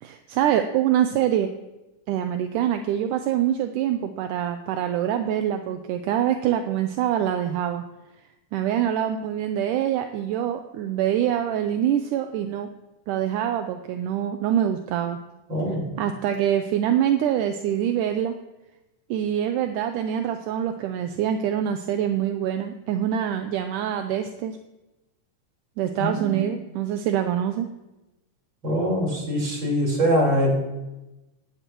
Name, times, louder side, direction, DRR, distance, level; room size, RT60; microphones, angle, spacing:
voice 1, 0.0-1.5 2.1-7.8 8.5-12.7 13.1-15.2 15.9-18.3 19.1-24.6 25.8-27.7, right 10 dB, 80° right, 6 dB, 2.2 m, -25 dB
voice 2, 15.5-15.8 26.0-26.4 28.6-30.6, equal, 35° right, -2 dB, 4.9 m, -23 dB
18.5 x 17.0 x 3.0 m, 1.0 s
omnidirectional pair, 3.8 m